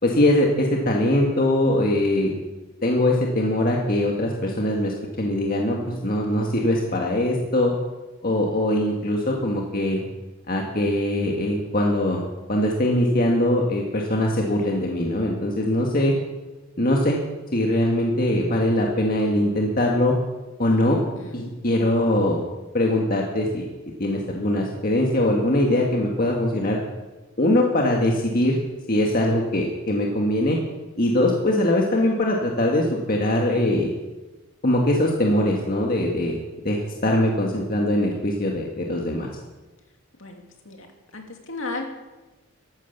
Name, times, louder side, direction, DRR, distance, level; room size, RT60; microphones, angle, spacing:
voice 1, 0.0-2.3 2.8-7.7 8.2-10.0 10.5-12.2 12.5-16.1 16.8-17.2 17.5-20.1 20.6-21.0 21.3-22.4 22.7-23.6 24.0-26.8 27.4-28.6 28.9-30.6 31.0-33.9 34.6-36.4 36.6-39.3, left 1 dB, 40° left, -1 dB, 1.8 m, -22 dB
voice 2, 20.9-21.5 40.2-40.9 41.1-41.8, left 3 dB, 60° left, 2 dB, 2.7 m, -35 dB
14.0 x 12.0 x 7.2 m, 1.1 s
head